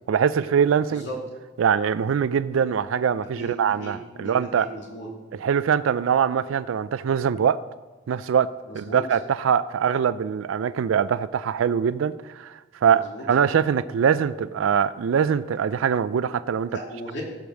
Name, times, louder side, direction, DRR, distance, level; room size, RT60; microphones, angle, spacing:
voice 1, 0.1-1.1 1.6-4.7 5.3-7.6 8.1-8.5 8.7-16.7, right 7 dB, 85° right, 15 dB, 0.4 m, -23 dB
voice 2, 3.4-5.1 8.7-9.0 12.9-13.2 16.7-17.2, equal, 60° left, -1 dB, 2.7 m, -37 dB
15.0 x 5.1 x 6.3 m, 1.2 s
head